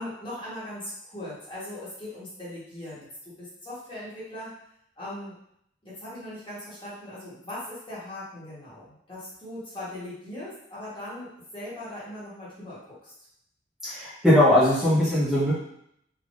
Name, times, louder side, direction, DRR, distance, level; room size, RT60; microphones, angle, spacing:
voice 1, 0.0-4.5 5.0-5.4 5.8-13.1, left 1 dB, 25° left, -9 dB, 1.2 m, -39 dB
voice 2, 13.8-15.5, left 1 dB, ahead, -12 dB, 1.0 m, -20 dB
3.5 x 3.0 x 2.5 m, 0.74 s
head